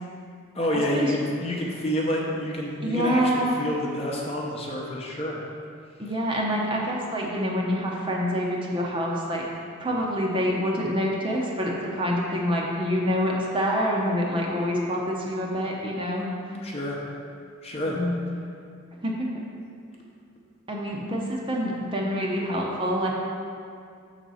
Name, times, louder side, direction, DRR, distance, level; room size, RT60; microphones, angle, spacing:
voice 1, 0.5-5.4 16.6-17.0 17.6-18.0, left 1 dB, 30° left, -2 dB, 0.8 m, -29 dB
voice 2, 2.8-3.6 6.0-9.4 9.8-16.3 17.9-18.3 19.0-19.4 20.7-23.1, equal, 25° right, -2 dB, 0.7 m, -26 dB
6.7 x 4.1 x 6.3 m, 2.3 s
head